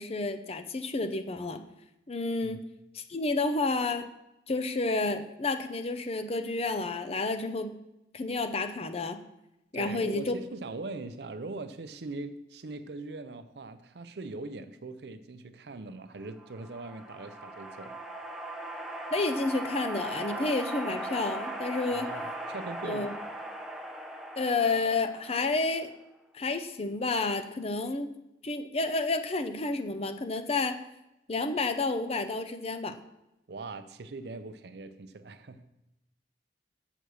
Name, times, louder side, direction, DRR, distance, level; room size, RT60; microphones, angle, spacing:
voice 1, 0.0-1.6 2.1-2.6 2.9-4.1 4.5-7.8 8.1-9.2 9.7-10.3 19.1-22.1 22.8-23.1 24.4-25.9 26.3-28.1 28.4-30.8 31.3-33.0, left 3 dB, 35° left, 0.6 m, -30 dB
voice 2, 9.7-18.0 21.9-23.1 33.5-35.7, right 3 dB, 65° right, 0.6 m, -41 dB
sound 1, 16.4-25.9, right 1 dB, ahead, 0.7 m, -39 dB
6.8 x 6.0 x 6.3 m
head